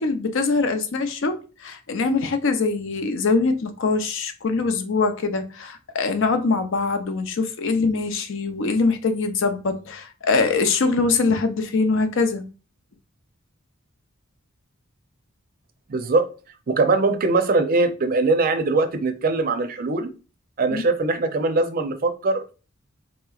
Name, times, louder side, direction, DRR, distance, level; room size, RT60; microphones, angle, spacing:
voice 1, 0.0-12.4 20.7-20.9, left 4 dB, 65° left, 0.6 m, -23 dB
voice 2, 15.9-16.3 16.7-20.1 20.6-22.6, right 3 dB, 45° right, 0.5 m, -21 dB
4.1 x 2.9 x 2.3 m
head